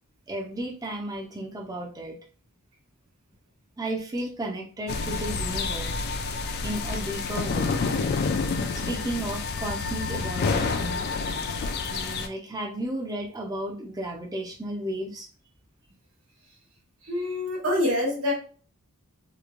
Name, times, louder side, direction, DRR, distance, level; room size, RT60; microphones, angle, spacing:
voice 1, 0.3-2.2 3.8-6.0 6.6-7.7 8.7-11.0 11.9-15.3, right 1 dB, 15° right, 0 dB, 0.5 m, -33 dB
sound 1, 4.9-12.3, left 4 dB, 45° left, 0.3 m, -28 dB
voice 2, 17.0-18.3, left 1 dB, 70° right, -2 dB, 1.3 m, -26 dB
3.0 x 2.2 x 2.4 m, 0.40 s
head